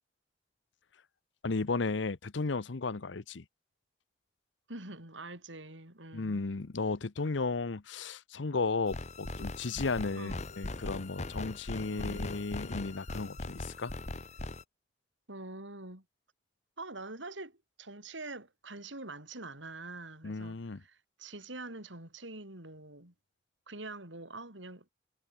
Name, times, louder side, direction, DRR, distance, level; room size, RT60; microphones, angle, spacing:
voice 1, 1.4-3.4 6.1-13.9 20.2-20.8, left 3 dB, 80° left, 0.8 m, -34 dB
voice 2, 4.7-6.4 10.2-10.4 11.9-12.2 15.3-16.0 16.8-23.1 23.7-24.9, right 2 dB, 80° right, 7.0 m, -45 dB
sound 1, 8.9-14.6, left 2 dB, 35° left, 0.9 m, -40 dB
head